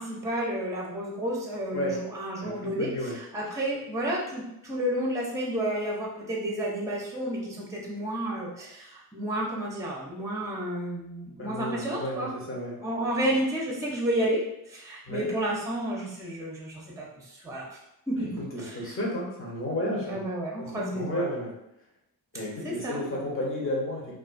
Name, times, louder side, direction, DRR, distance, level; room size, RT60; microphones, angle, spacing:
voice 1, 0.0-2.9 3.3-12.3 12.8-14.4 14.7-17.8 18.1-18.9 20.0-21.3 22.6-23.0, right 1 dB, 10° right, -2 dB, 0.6 m, -31 dB
voice 2, 2.4-3.1 11.4-12.7 15.1-15.3 18.2-20.2 20.6-21.5 22.3-24.2, left 1 dB, 35° left, -3 dB, 0.9 m, -32 dB
2.3 x 2.3 x 2.5 m, 0.84 s
cardioid pair, 70°, 39 cm